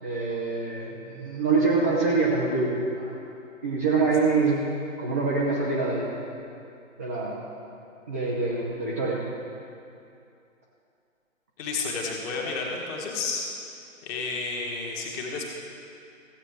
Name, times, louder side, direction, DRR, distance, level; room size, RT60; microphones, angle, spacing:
voice 1, 0.0-3.1 3.6-4.6 5.0-6.1 7.0-7.4 8.1-9.2, right 3 dB, 10° right, -6 dB, 0.5 m, -25 dB
voice 2, 11.6-13.5 14.0-15.5, left 4 dB, 20° left, -1 dB, 1.5 m, -31 dB
15.0 x 8.4 x 4.9 m, 2.6 s
figure-of-eight pair, 130°, 41 cm